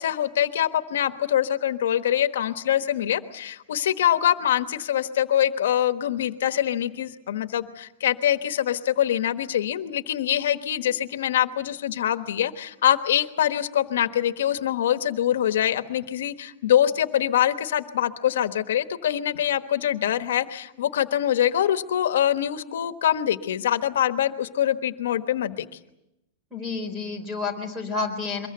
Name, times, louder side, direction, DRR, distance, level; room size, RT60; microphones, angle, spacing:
voice 1, 0.0-25.6, left 11 dB, 85° left, 9 dB, 1.2 m, -24 dB
voice 2, 26.5-28.5, left 4 dB, 5° right, 5 dB, 3.9 m, -30 dB
23.5 x 22.0 x 7.9 m, 0.90 s
supercardioid pair, 175°, 0 cm